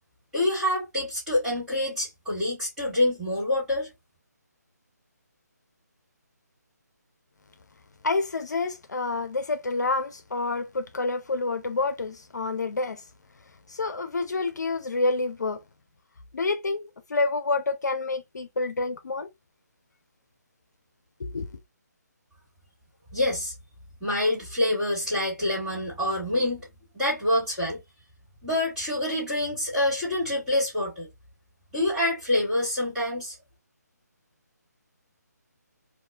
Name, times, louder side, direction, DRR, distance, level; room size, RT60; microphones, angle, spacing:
voice 1, 0.3-3.9 23.1-23.5 24.0-26.6 26.9-27.8 28.4-31.1 31.7-33.4, left 1 dB, 5° right, 1.9 m, -26 dB
voice 2, 8.0-13.0 13.7-15.6 16.3-19.3 21.2-21.5, left 3 dB, 75° left, 0.6 m, -28 dB
3.0 x 2.5 x 2.2 m
figure-of-eight pair, 155°, 10 cm